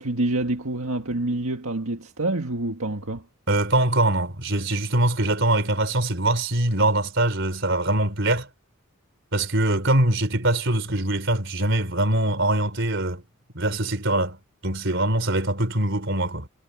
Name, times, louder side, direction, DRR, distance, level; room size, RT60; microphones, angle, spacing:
voice 1, 0.0-3.2, right 2 dB, 75° right, 1.8 m, -27 dB
voice 2, 3.5-8.5 9.3-13.2 13.5-14.4 14.6-16.5, right 1 dB, 55° right, 4.2 m, -23 dB
head